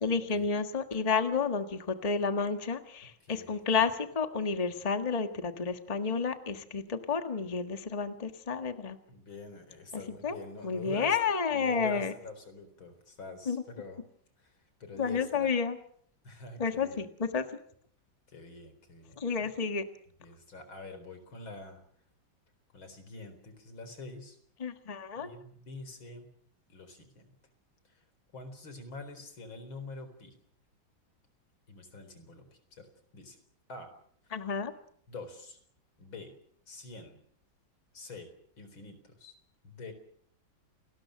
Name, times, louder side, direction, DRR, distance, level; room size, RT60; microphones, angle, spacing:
voice 1, 0.0-9.0 10.2-10.3 10.6-12.1 13.5-13.6 15.0-15.8 16.6-17.4 19.2-19.8 24.6-25.3 34.3-34.7, left 5 dB, 20° left, 7 dB, 1.5 m, -30 dB
voice 2, 3.2-3.5 9.1-14.0 14.4-15.5 16.2-17.0 18.3-19.5 20.2-21.8 22.7-24.4 25.1-26.3 26.7-27.3 27.8-28.0 28.3-30.3 31.7-32.9 33.1-33.4 33.7-33.9 35.1-35.6 36.0-36.3 36.7-37.2 37.9-38.3 38.6-39.3 39.6-39.9, left 3 dB, 80° left, 9 dB, 4.9 m, -46 dB
29.5 x 20.0 x 6.5 m, 0.63 s
omnidirectional pair, 2.1 m